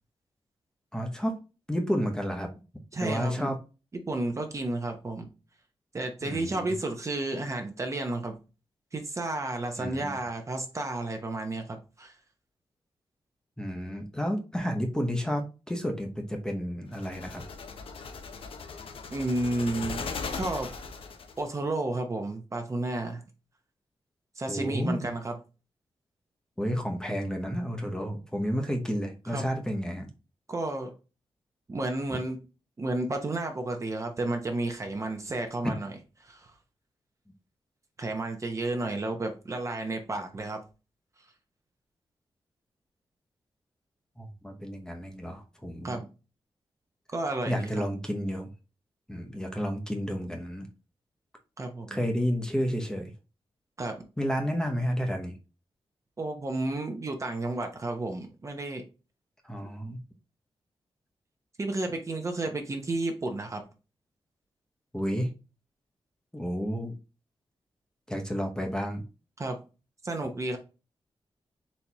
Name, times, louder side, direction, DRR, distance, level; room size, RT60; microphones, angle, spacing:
voice 1, 0.9-1.4 1.7-2.5 3.0-3.6 6.2-6.8 9.8-10.1 13.6-17.4 24.5-25.0 26.6-30.1 44.2-46.0 47.5-48.5 49.1-50.7 51.9-53.1 54.2-55.3 59.4-60.0 64.9-65.3 66.3-66.9 68.1-69.0, equal, 5° left, 2 dB, 0.8 m, -31 dB
voice 2, 2.9-3.5 4.1-5.3 5.9-8.3 8.9-12.1 19.1-20.7 21.4-23.2 24.4-25.4 29.3-29.5 30.5-30.9 31.7-32.4 32.8-35.9 36.2-36.5 38.0-40.6 45.8-46.1 47.1-47.8 51.6-52.0 53.8-54.0 56.2-58.8 61.6-63.6 69.4-69.6 70.0-70.6, right 2 dB, 30° right, 4 dB, 0.8 m, -32 dB
sound 1, 16.9-21.5, left 5 dB, 70° left, 0.6 m, -38 dB
4.2 x 3.4 x 2.9 m, 0.31 s
wide cardioid pair, 110°, 10 cm